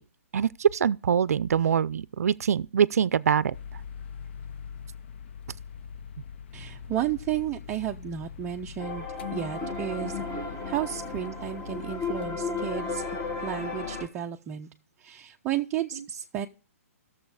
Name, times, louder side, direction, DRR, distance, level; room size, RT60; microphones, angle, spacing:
voice 1, 0.3-3.5, right 8 dB, 80° right, 0.4 m, -24 dB
sound 1, 3.5-14.1, left 7 dB, 45° left, 0.5 m, -43 dB
voice 2, 6.5-13.0 13.4-14.7 15.0-16.5, right 11 dB, 15° right, 0.5 m, -33 dB
sound 2, 8.8-14.0, left 3 dB, 15° left, 1.4 m, -34 dB
13.0 x 7.1 x 4.8 m
hypercardioid pair, 160°, 8 cm